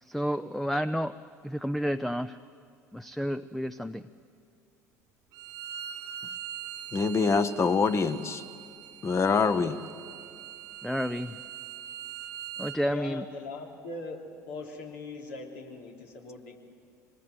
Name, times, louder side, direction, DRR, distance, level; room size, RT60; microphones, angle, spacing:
voice 1, 0.0-1.1 1.4-2.4 2.9-4.1 10.8-11.4 12.6-13.2, equal, ahead, 13 dB, 0.5 m, -30 dB
Bowed string instrument, 5.3-12.8, right 10 dB, 60° right, 1.2 m, -42 dB
voice 2, 6.9-8.4 9.0-9.8, left 5 dB, 30° left, 12 dB, 1.1 m, -25 dB
voice 3, 12.8-14.2 14.5-16.6, left 3 dB, 75° left, 1 dB, 3.1 m, -40 dB
24.0 x 20.0 x 8.0 m, 2.4 s
hypercardioid pair, 65°, 9 cm